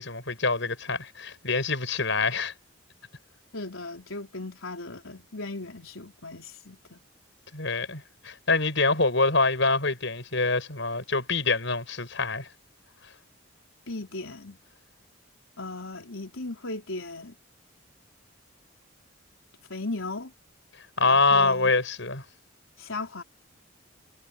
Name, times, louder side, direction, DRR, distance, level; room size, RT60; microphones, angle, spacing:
voice 1, 0.0-2.5 7.5-12.5 21.0-22.2, left 3 dB, 60° left, 7.7 m, -25 dB
voice 2, 3.5-7.0 13.9-14.6 15.6-17.4 19.7-20.3 21.0-21.7 22.8-23.2, left 2 dB, 85° left, 4.2 m, -37 dB
head